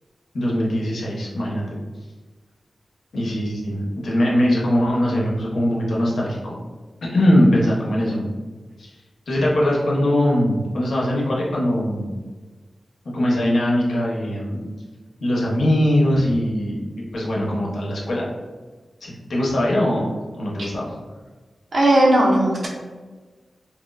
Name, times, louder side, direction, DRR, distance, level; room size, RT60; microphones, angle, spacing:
voice 1, 0.3-1.6 3.1-6.6 7.0-8.3 8.8-8.9 9.3-12.1 13.1-14.6 15.2-18.2 19.0-20.0 20.4-20.9, equal, 85° left, -4 dB, 0.6 m, -21 dB
voice 2, 21.7-22.7, right 1 dB, 70° right, -4 dB, 0.7 m, -16 dB
2.9 x 2.0 x 2.2 m, 1.3 s
wide cardioid pair, 80°, 0 cm